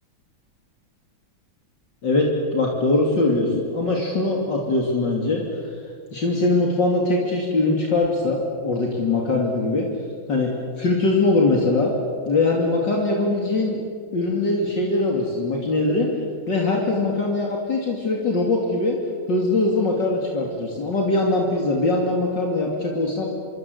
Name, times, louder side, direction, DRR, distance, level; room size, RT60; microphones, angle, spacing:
voice 1, 2.0-5.5 6.1-9.9 10.3-10.5 10.8-11.9 12.3-13.8 14.1-16.1 16.5-19.0 19.3-23.3, left 2 dB, 60° left, -1 dB, 3.4 m, -22 dB
26.5 x 23.0 x 8.1 m, 2.1 s
omnidirectional pair, 2.2 m